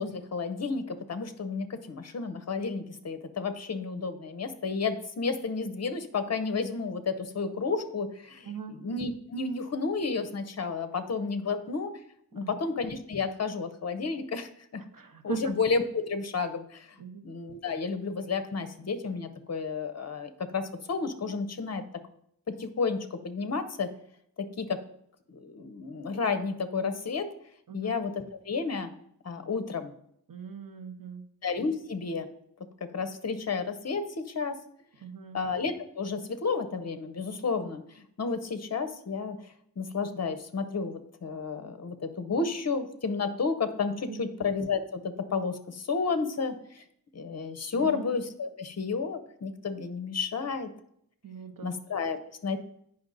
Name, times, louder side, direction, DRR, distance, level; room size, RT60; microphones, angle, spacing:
voice 1, 0.0-11.9 12.3-14.8 15.2-16.9 17.2-21.8 22.5-23.9 24.4-24.8 25.3-27.3 27.7-28.9 29.2-29.9 31.4-32.3 32.8-34.6 35.3-39.4 39.8-46.8 47.1-50.7 51.6-52.6, left 4 dB, 45° left, 10 dB, 0.7 m, -31 dB
voice 2, 8.5-8.8 12.4-12.5 14.9-15.4 17.0-17.2 27.7-27.9 30.3-31.2 35.0-35.4 44.1-44.3 47.7-48.1 51.2-51.7, right 6 dB, 65° right, 8 dB, 0.8 m, -40 dB
8.8 x 5.5 x 3.9 m, 0.70 s
wide cardioid pair, 120°, 37 cm